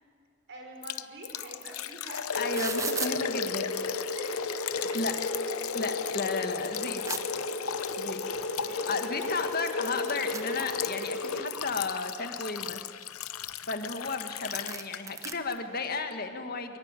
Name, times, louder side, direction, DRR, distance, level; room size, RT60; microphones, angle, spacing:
voice 1, 0.5-2.3 3.1-3.3 4.2-4.4 4.9-5.0 8.5-8.9, right 1 dB, 55° right, 2 dB, 5.6 m, -45 dB
Liquid, 0.8-15.2 15.5-15.6 16.1-16.2, left 9 dB, 85° left, 0.8 m, -37 dB
sound 1, 1.6-1.7 1.9-3.1 4.0-4.1 4.5-5.2 5.7-5.8 6.2-7.2 8.4-8.5 8.9-9.0 9.2-11.1 11.5-12.2 12.7-14.0 14.2-14.3 14.5-15.3, right 5 dB, 15° right, 1.0 m, -38 dB
sound 2, 2.3-11.4, left 2 dB, 65° left, 2.2 m, -34 dB
voice 2, 2.4-3.7 4.8-5.1 5.7-7.3 8.0-8.2 8.9-12.8 13.6-16.8, left 3 dB, 45° left, 6 dB, 1.8 m, -33 dB
23.5 x 22.5 x 9.1 m, 2.1 s
head